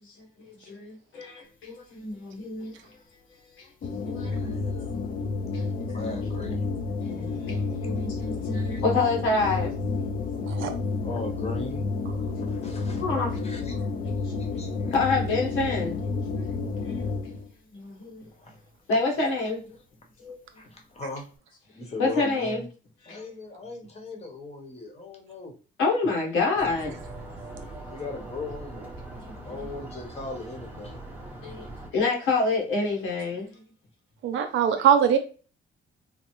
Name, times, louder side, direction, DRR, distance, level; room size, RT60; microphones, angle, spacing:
voice 1, 0.0-2.8 3.5-3.7 4.0-5.0 5.5-6.2 7.0-10.3 12.4-12.6 13.0-13.3 14.2-14.6 14.9-16.0 16.4-17.0 17.7-18.2 18.9-19.8 20.2-20.4 22.0-22.6 23.0-23.2 25.8-27.0 27.6-27.7 29.3-29.7 31.4-33.6, left 3 dB, 90° left, 1.1 m, -28 dB
sound 1, 3.8-17.5, left 4 dB, 50° left, 0.5 m, -30 dB
voice 2, 4.3-5.1 5.9-6.6 8.8-9.1 11.0-11.9 12.4-13.0 13.4-13.7 14.4-14.9 18.3-18.6 20.6-21.3 21.7-22.6 23.1-25.6 27.9-28.9 29.4-31.4, left 2 dB, 30° left, 1.0 m, -39 dB
sound 2, 26.5-31.9, right 2 dB, 10° right, 0.7 m, -41 dB
voice 3, 34.2-35.2, right 8 dB, 75° right, 0.6 m, -21 dB
3.2 x 2.0 x 3.0 m
cardioid pair, 90°, 20 cm